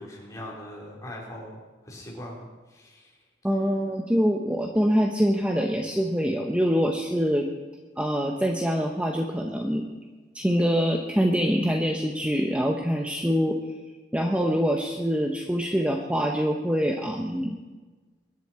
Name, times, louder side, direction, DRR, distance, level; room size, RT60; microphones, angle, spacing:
voice 1, 0.0-3.2 3.5-3.6, left 1 dB, 20° left, -2 dB, 3.8 m, -41 dB
voice 2, 3.4-7.5 8.0-9.8 10.3-13.6 14.1-17.6, equal, 5° right, 2 dB, 1.0 m, -24 dB
22.5 x 11.5 x 4.5 m, 1.3 s
head